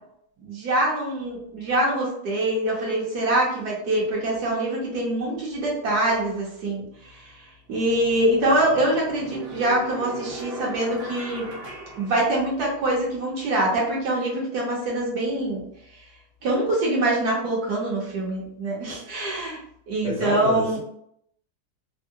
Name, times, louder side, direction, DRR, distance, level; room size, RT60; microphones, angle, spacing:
voice 1, 0.4-6.8 7.7-11.5 12.0-15.6 16.4-19.6 19.9-20.8, right 1 dB, 65° right, -3 dB, 1.4 m, -24 dB
sound 1, 6.9-7.1 7.7-12.9, right 2 dB, 45° right, 0.8 m, -39 dB
voice 2, 20.0-20.8, left 2 dB, 65° left, -5 dB, 0.6 m, -29 dB
3.5 x 2.1 x 2.6 m, 0.71 s
omnidirectional pair, 1.9 m